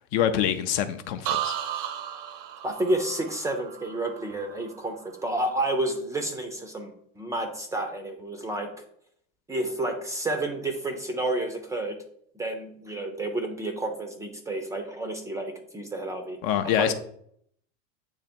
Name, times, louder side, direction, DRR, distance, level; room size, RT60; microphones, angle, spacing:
voice 1, 0.1-1.6 16.4-16.9, left 10 dB, 40° left, 9 dB, 0.5 m, -25 dB
sound 1, 1.2-5.1 5.4-5.9, right 10 dB, 70° right, 0.7 m, -35 dB
voice 2, 2.6-8.8 9.5-12.0 12.3-16.4 16.7-16.9, right 1 dB, 10° right, 5 dB, 0.5 m, -30 dB
8.1 x 2.9 x 4.3 m, 0.65 s
supercardioid pair, 150°, 38 cm